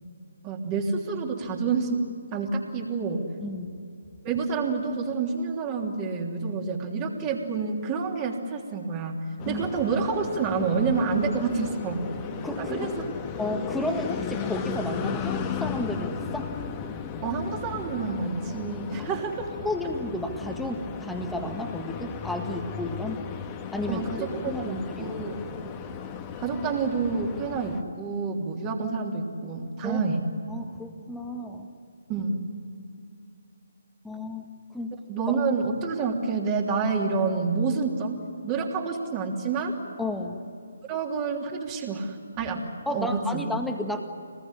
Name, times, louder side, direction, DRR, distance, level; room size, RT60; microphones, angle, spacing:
voice 1, 0.4-2.1 2.3-3.3 4.2-9.2 9.4-12.0 12.6-12.9 17.2-19.5 23.9-25.3 26.4-30.2 32.1-32.4 35.1-38.1 38.4-39.7 40.9-43.4, right 4 dB, 25° right, 0 dB, 3.2 m, -28 dB
voice 2, 3.4-3.8 9.4-9.6 11.2-11.3 12.4-13.0 13.4-16.5 19.5-23.2 23.7-25.2 29.8-30.0 30.5-31.7 34.0-34.5 34.7-35.0 40.0-40.4 42.9-44.0, left 1 dB, 5° left, 3 dB, 1.8 m, -32 dB
sound 1, 9.4-27.8, left 7 dB, 20° left, 1.6 m, -35 dB
25.5 x 20.0 x 9.9 m, 2.4 s
figure-of-eight pair, 145°, 0 cm